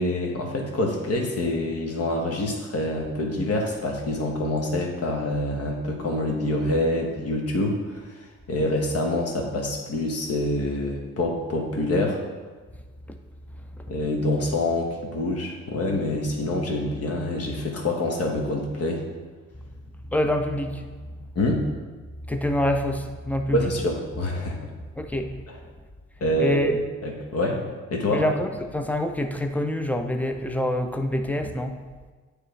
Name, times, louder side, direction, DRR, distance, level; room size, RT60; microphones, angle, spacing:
voice 1, 0.0-12.2 13.9-19.0 21.3-21.6 23.5-24.6 25.5-25.6 26.2-26.6 27.0-28.3, left 1 dB, 55° left, 1 dB, 1.2 m, -26 dB
voice 2, 20.1-21.2 22.2-23.7 25.0-25.4 26.4-26.8 28.1-31.7, left 1 dB, 5° left, 6 dB, 0.4 m, -26 dB
8.8 x 3.3 x 3.2 m, 1.4 s
cardioid pair, 90°, 30 cm